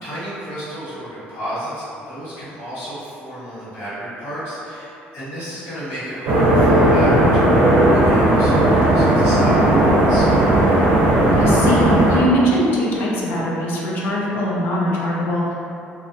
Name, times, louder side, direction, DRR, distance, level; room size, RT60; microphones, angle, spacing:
voice 1, 0.0-10.5, equal, 90° left, -13 dB, 1.4 m, -32 dB
sound 1, 6.3-12.2, right 1 dB, 70° right, 0.5 m, -15 dB
voice 2, 11.3-15.5, equal, 60° left, -4 dB, 0.5 m, -21 dB
2.5 x 2.0 x 2.5 m, 2.7 s
cardioid pair, 165°, 4 cm